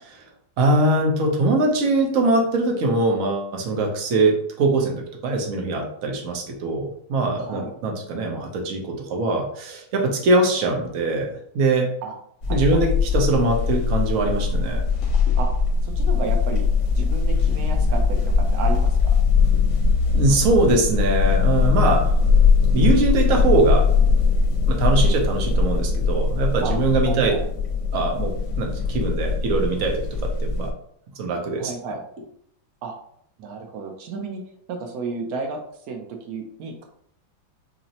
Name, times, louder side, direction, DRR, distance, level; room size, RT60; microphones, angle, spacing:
voice 1, 0.6-11.9 12.5-14.8 20.1-22.1 22.7-23.9 24.7-27.3 27.9-30.3 30.6-30.7 31.2-31.7, right 2 dB, 65° right, 2 dB, 0.8 m, -22 dB
voice 2, 7.4-7.7 12.0-12.2 12.5-12.9 15.4-15.5 15.8-16.7 16.9-19.2 26.6-26.7 27.1-27.4 31.6-32.0 32.8-32.9 33.4-34.4 34.7-35.6 35.9-36.8, right 4 dB, 90° right, 3 dB, 0.8 m, -32 dB
sound 1, 12.4-30.7, left 5 dB, 75° left, 1.5 m, -20 dB
5.5 x 2.0 x 2.7 m, 0.68 s
omnidirectional pair, 2.1 m